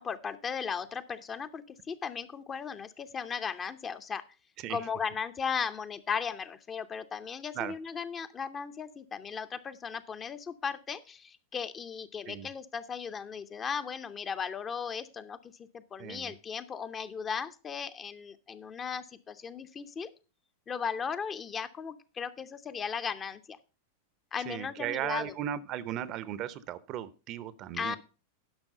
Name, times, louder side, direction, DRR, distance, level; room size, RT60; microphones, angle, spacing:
voice 1, 0.0-4.2 4.7-20.1 20.7-23.6 24.3-25.3 27.7-28.0, left 6 dB, 20° left, 11 dB, 0.7 m, -36 dB
voice 2, 16.0-16.3 24.5-28.0, right 11 dB, 35° right, 17 dB, 0.7 m, -36 dB
10.5 x 6.0 x 5.3 m, 0.34 s
figure-of-eight pair, 90°, 0 cm